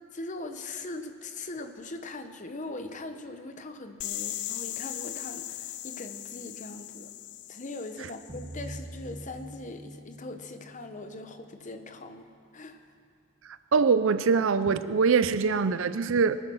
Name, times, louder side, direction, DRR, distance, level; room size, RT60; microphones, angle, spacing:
voice 1, 0.1-7.1 7.5-12.3 12.5-12.9, left 2 dB, 35° left, 7 dB, 0.9 m, -40 dB
sound 1, 4.0-8.8, left 14 dB, 55° left, 0.5 m, -38 dB
sound 2, 8.3-11.4, right 1 dB, 30° right, 1.1 m, -43 dB
voice 2, 13.7-16.4, right 5 dB, 65° right, 13 dB, 0.5 m, -23 dB
22.5 x 10.0 x 6.3 m, 2.3 s
head